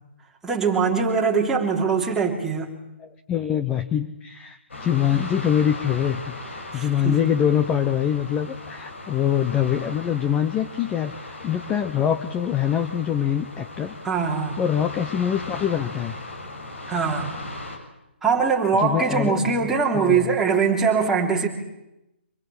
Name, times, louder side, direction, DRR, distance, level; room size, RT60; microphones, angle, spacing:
voice 1, 0.4-2.7 6.7-7.2 14.0-14.6 16.9-17.4 18.2-21.5, right 5 dB, 5° right, -2 dB, 3.0 m, -22 dB
voice 2, 3.0-13.9 14.6-16.2 18.8-19.6 19.9-20.3, left 9 dB, 15° left, 8 dB, 0.9 m, -24 dB
sound 1, 4.7-17.8, left 2 dB, 90° left, 6.6 m, -38 dB
26.0 x 20.0 x 8.5 m, 0.93 s
hypercardioid pair, 155°, 6 cm